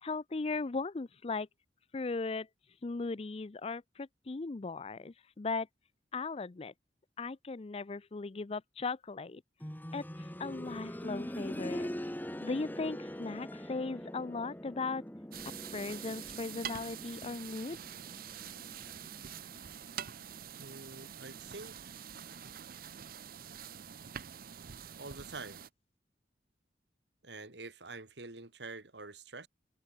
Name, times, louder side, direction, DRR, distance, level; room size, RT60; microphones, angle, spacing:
voice 1, 0.0-1.5 1.9-2.5 2.8-5.7 6.1-6.7 7.2-9.4 9.9-11.9 12.4-15.0 15.7-17.8, left 3 dB, 35° left, 0.5 m, -37 dB
sound 1, 9.6-20.4 20.7-20.8 21.7-21.8, equal, 10° left, 2.1 m, -43 dB
sound 2, 15.3-25.7, right 9 dB, 55° right, 0.7 m, -46 dB
voice 2, 20.6-21.7 25.0-25.6 27.2-29.5, right 3 dB, 75° right, 2.7 m, -46 dB
head